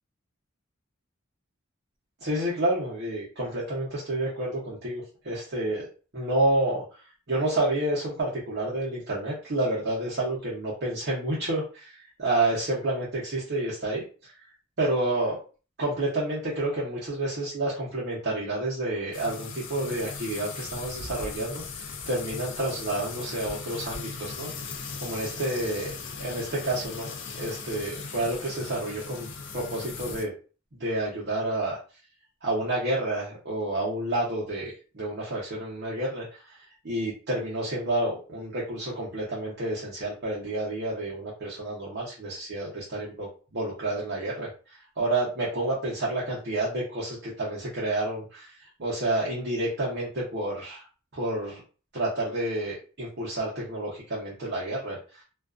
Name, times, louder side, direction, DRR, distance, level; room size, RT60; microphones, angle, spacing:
voice 1, 2.2-5.9 6.1-6.8 7.3-14.3 14.8-15.4 15.8-24.7 25.0-29.3 29.5-30.3 30.8-31.8 32.4-36.6 36.8-50.8 51.1-51.6 51.9-55.2, right 1 dB, 55° right, -5 dB, 0.8 m, -29 dB
sound 1, 19.1-30.3, left 4 dB, 60° left, 0.4 m, -38 dB
2.4 x 2.3 x 2.4 m, 0.36 s
head